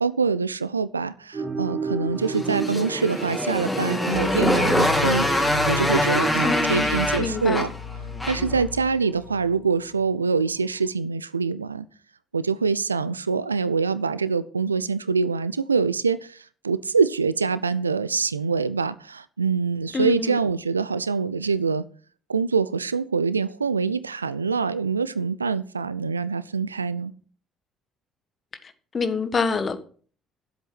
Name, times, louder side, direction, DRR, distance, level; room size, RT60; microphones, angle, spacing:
voice 1, 0.0-7.7 8.3-11.9 12.3-16.4 16.6-21.8 22.3-27.1, right 5 dB, 85° right, 0.4 m, -25 dB
sound 1, 1.3-6.7, right 4 dB, 30° right, 2.0 m, -31 dB
Motorcycle, 2.3-8.6, left 1 dB, 15° left, 3.9 m, -24 dB
sound 2, 4.1-10.1 10.4-10.6, left 6 dB, 65° left, 6.7 m, -35 dB
voice 2, 6.4-7.6 19.9-20.2 28.9-29.8, left 4 dB, 35° left, 1.6 m, -26 dB
11.0 x 7.9 x 6.0 m
figure-of-eight pair, 50°, 0 cm